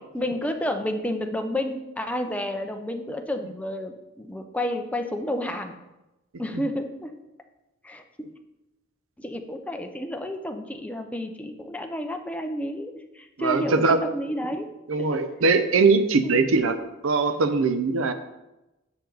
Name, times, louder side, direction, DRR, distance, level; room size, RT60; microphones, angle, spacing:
voice 1, 0.1-5.7 6.4-7.1 7.8-8.3 9.2-14.7 14.9-15.2 16.2-16.4, left 1 dB, 5° left, 4 dB, 0.6 m, -31 dB
voice 2, 13.4-14.0 14.9-16.7 17.0-18.1, right 4 dB, 90° right, 9 dB, 0.6 m, -21 dB
7.0 x 6.5 x 3.9 m, 0.99 s
head